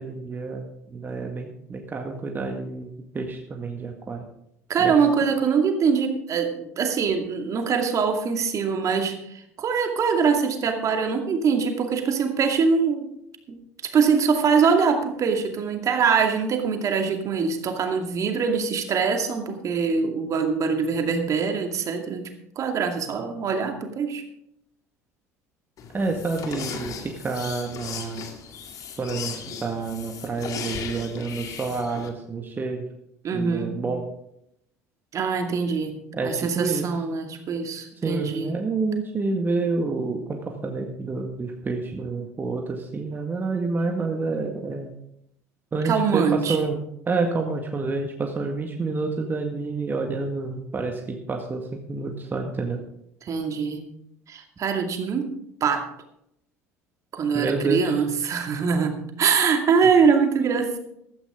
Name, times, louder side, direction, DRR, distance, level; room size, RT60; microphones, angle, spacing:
voice 1, 0.0-4.2 4.8-4.9 25.9-28.2 29.0-32.8 33.3-34.1 36.1-36.8 38.0-44.9 45.7-46.8 47.1-52.8 57.3-57.9, right 3 dB, 25° right, 2 dB, 1.9 m, -28 dB
voice 2, 4.7-13.1 13.5-22.3 22.6-24.2 33.2-33.8 35.1-36.0 36.2-38.6 45.8-46.6 53.2-53.9 54.3-55.3 55.6-55.8 57.1-60.8, right 5 dB, 40° right, 5 dB, 2.3 m, -23 dB
sound 1, 25.8-32.1, left 6 dB, 45° left, 2.2 m, -37 dB
15.5 x 13.5 x 3.8 m, 0.77 s
figure-of-eight pair, 65°, 8 cm